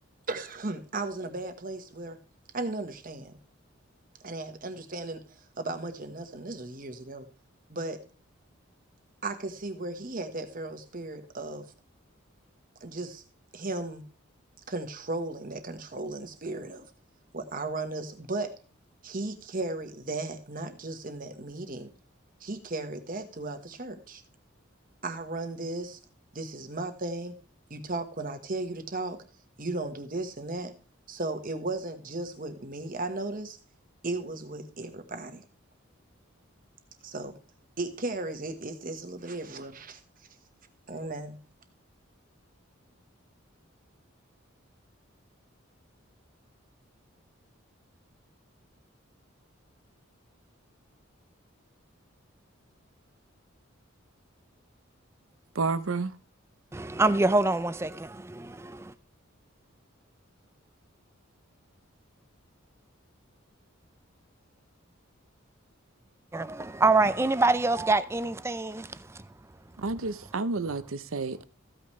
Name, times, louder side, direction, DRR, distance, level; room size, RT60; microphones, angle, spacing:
voice 1, 0.3-2.2 2.5-3.4 4.2-7.3 7.7-8.0 9.2-11.7 12.8-13.2 13.5-14.0 14.7-16.9 17.3-18.5 19.0-21.9 22.4-24.2 25.0-26.0 26.3-27.3 27.7-29.2 29.6-30.7 31.1-33.6 34.0-35.4 37.0-37.3 37.8-40.0 40.9-41.4, right 2 dB, 40° right, 1.4 m, -35 dB
voice 2, 55.5-56.1 69.8-71.4, right 3 dB, 85° right, 0.8 m, -30 dB
voice 3, 56.7-58.9 66.3-69.3, right 3 dB, 15° right, 0.4 m, -26 dB
15.0 x 8.9 x 3.2 m
head